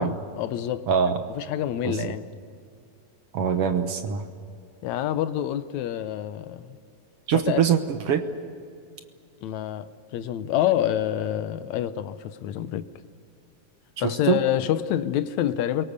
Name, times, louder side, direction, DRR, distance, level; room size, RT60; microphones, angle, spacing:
voice 1, 0.0-0.9 1.3-2.3 4.8-6.8 7.3-7.7 9.4-12.9 14.0-15.8, left 11 dB, 80° left, 2.1 m, -27 dB
voice 2, 0.9-1.2 1.8-2.1 3.3-4.2 7.3-8.2 14.0-14.4, right 7 dB, 60° right, 1.8 m, -23 dB
28.5 x 23.0 x 6.7 m
omnidirectional pair, 3.3 m